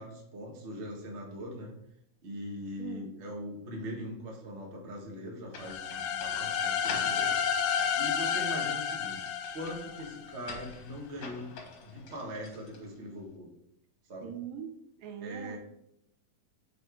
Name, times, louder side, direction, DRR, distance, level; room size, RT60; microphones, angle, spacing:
voice 1, 0.0-1.7 2.2-7.7 8.0-11.5 11.8-13.5 14.1-14.3 15.2-15.6, equal, 55° right, 0.7 m, -41 dB
voice 2, 2.8-3.2 14.2-15.6, right 9 dB, 80° right, 2.2 m, -42 dB
sound 1, 5.5-13.2, left 4 dB, 60° left, 1.8 m, -48 dB
sound 2, 5.6-10.4, left 7 dB, 80° left, 2.1 m, -31 dB
6.0 x 5.1 x 4.8 m
omnidirectional pair, 4.3 m